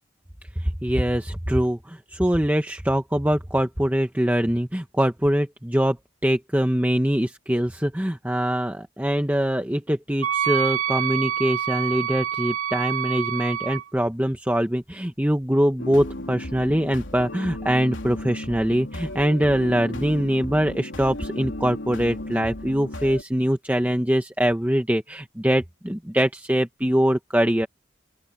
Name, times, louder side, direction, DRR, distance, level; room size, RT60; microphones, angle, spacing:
voice 1, 0.6-6.0 6.2-27.7, equal, 10° right, 0.9 m, -23 dB
Wind instrument woodwind instrument, 10.2-13.8, right 10 dB, 75° right, 2.7 m, -26 dB
sound 1, 15.8-23.2, left 1 dB, 70° left, 3.5 m, -35 dB
open air
head